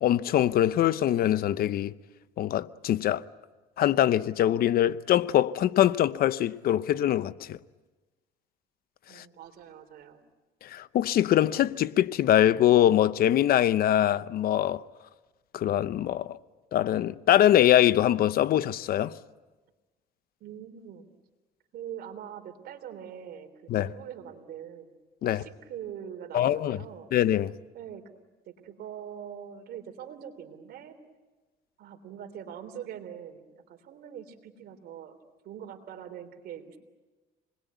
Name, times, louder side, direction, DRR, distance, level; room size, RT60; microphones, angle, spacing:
voice 1, 0.0-1.9 2.4-3.2 3.8-7.6 9.2-9.3 10.6-14.8 15.5-16.4 16.7-19.1 23.7-23.9 25.2-25.4 26.3-26.8 27.1-27.5, left 12 dB, 60° left, 0.8 m, -23 dB
voice 2, 9.1-10.2 20.4-21.1 21.7-24.9 25.2-27.1 27.7-28.0 28.5-31.0 31.8-35.2 35.4-36.8, right 9 dB, 65° right, 3.3 m, -43 dB
27.5 x 21.0 x 9.4 m
cardioid pair, 110°, 17 cm